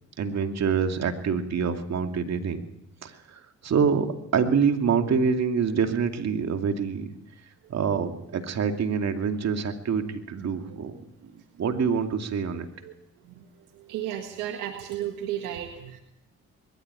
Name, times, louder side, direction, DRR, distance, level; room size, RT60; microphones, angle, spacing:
voice 1, 0.2-2.6 3.0-3.1 3.6-4.1 4.3-7.1 7.7-11.0 11.6-12.7, right 6 dB, 60° right, 5 dB, 2.6 m, -25 dB
voice 2, 13.7-16.0, right 11 dB, 85° right, 4 dB, 1.7 m, -34 dB
22.0 x 13.0 x 9.7 m, 0.81 s
supercardioid pair, 60°, 31 cm